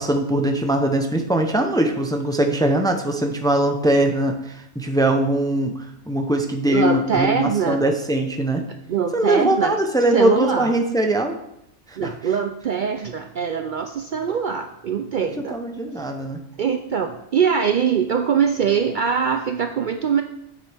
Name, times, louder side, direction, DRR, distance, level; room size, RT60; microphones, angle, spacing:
voice 1, 0.0-8.6 9.1-11.3 11.9-12.1 15.5-16.4, right 1 dB, 5° left, 4 dB, 0.6 m, -21 dB
voice 2, 6.7-7.8 8.9-9.8 10.1-10.7 12.0-15.6 16.0-16.1 16.6-20.2, right 7 dB, 55° right, 7 dB, 0.6 m, -22 dB
9.3 x 7.5 x 3.5 m, 0.79 s
omnidirectional pair, 1.2 m